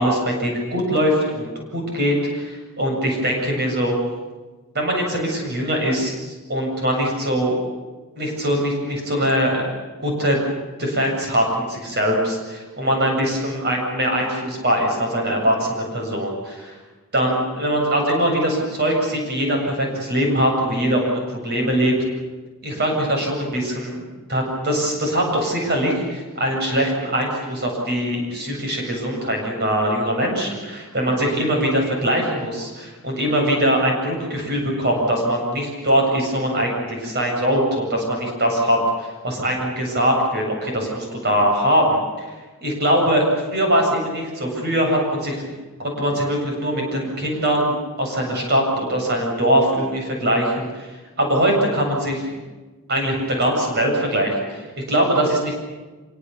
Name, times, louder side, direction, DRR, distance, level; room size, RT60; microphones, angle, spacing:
voice 1, 0.0-4.0 4.7-7.6 8.2-9.7 10.0-10.4 10.8-16.8 17.1-21.9 22.6-42.3 42.6-45.5 45.8-50.9 51.2-52.3 52.9-55.5, equal, 45° right, 1 dB, 8.0 m, -22 dB
26.5 x 24.5 x 7.2 m, 1.3 s
head